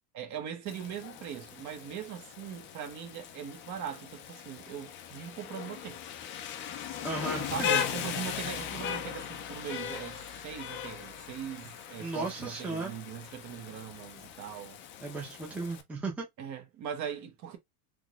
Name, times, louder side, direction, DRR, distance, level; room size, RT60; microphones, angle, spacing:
voice 1, 0.1-6.0 7.5-14.8 16.4-17.6, right 9 dB, 35° right, 0.9 m, -40 dB
Rain, 0.7-15.8, left 9 dB, 30° left, 0.3 m, -38 dB
voice 2, 7.0-7.8 12.0-13.0 15.0-16.3, right 3 dB, 5° right, 0.7 m, -35 dB
3.6 x 3.0 x 2.3 m
supercardioid pair, 130°, 48 cm